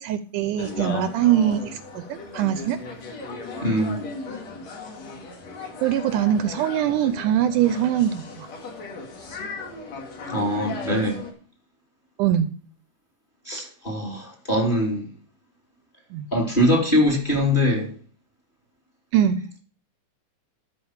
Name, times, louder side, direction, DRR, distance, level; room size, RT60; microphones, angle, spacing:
voice 1, 0.0-2.8 5.8-8.5 12.2-12.5 16.1-16.3 19.1-19.4, right 10 dB, 80° right, 12 dB, 2.0 m, -22 dB
sound 1, 0.6-11.3, left 3 dB, 55° left, 3.1 m, -36 dB
voice 2, 3.6-4.0 10.3-11.2 13.5-15.1 16.3-17.9, left 1 dB, 15° left, 0 dB, 2.6 m, -22 dB
12.5 x 5.0 x 6.3 m, 0.43 s
omnidirectional pair, 3.9 m